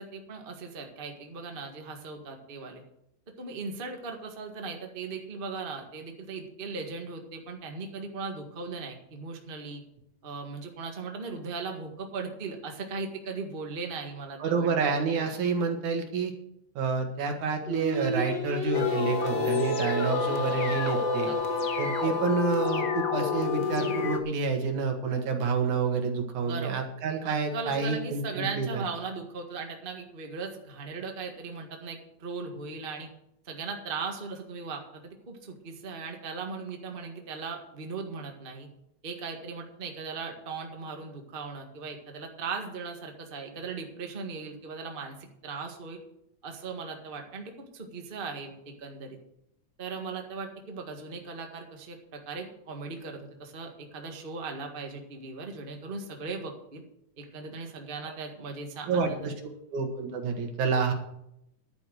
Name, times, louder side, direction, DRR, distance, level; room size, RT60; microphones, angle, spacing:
voice 1, 0.0-2.8 3.4-9.8 10.2-14.9 19.3-19.9 21.3-21.6 26.4-26.8 27.2-33.1 33.4-38.7 39.0-45.2 45.4-46.0 46.4-49.2 49.8-56.8 57.2-59.3, right 4 dB, 25° right, 3 dB, 1.3 m, -38 dB
voice 2, 14.4-16.3 16.8-21.3 21.8-28.8 58.1-58.2 58.9-59.3 59.7-60.9, right 5 dB, 90° right, 4 dB, 3.2 m, -29 dB
Singing, 17.6-22.8, left 3 dB, 15° left, 3.4 m, -31 dB
sound 1, 18.7-24.2, left 5 dB, 75° left, 0.8 m, -30 dB
11.5 x 8.9 x 6.3 m, 0.77 s
omnidirectional pair, 3.3 m